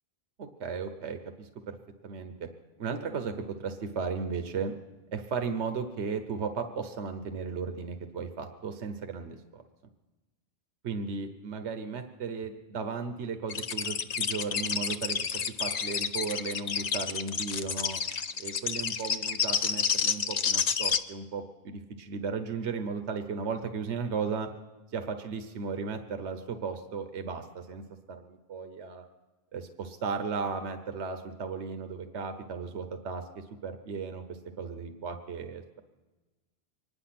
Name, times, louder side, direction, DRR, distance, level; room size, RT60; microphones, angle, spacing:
voice 1, 0.4-1.8 2.0-2.5 2.8-4.7 5.1-9.6 10.8-15.2 15.6-18.0 18.4-24.5 24.9-29.0 29.5-35.6, right 5 dB, 80° right, 7 dB, 1.2 m, -35 dB
sound 1, 13.5-21.0, left 6 dB, 45° left, 0.6 m, -29 dB
24.5 x 10.0 x 5.9 m, 1.2 s
omnidirectional pair, 1.1 m